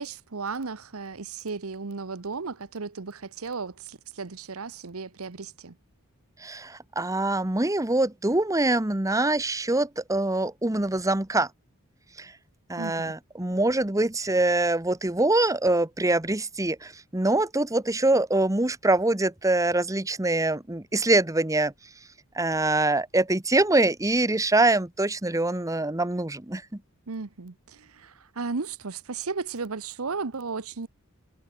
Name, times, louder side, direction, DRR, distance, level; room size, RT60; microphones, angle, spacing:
voice 1, 0.0-5.7 12.8-13.1 27.1-30.9, right 4 dB, 90° right, 1.0 m, -35 dB
voice 2, 6.4-11.5 12.2-12.3 12.7-21.7 22.3-26.6, right 2 dB, 15° right, 1.1 m, -24 dB
head